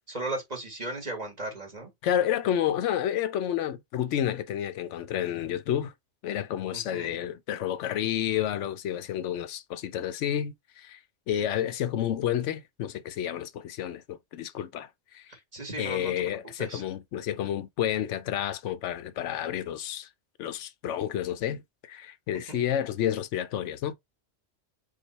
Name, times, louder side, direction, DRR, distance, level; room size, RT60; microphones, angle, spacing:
voice 1, 0.1-1.9 6.7-7.2 15.3-16.8 22.5-22.6, right 2 dB, 35° right, 1.7 m, -37 dB
voice 2, 2.0-5.9 6.2-11.0 11.3-15.2 15.8-20.1 20.4-21.6 21.9-23.9, left 10 dB, 90° left, 0.9 m, -30 dB
4.9 x 2.3 x 4.1 m
omnidirectional pair, 1.2 m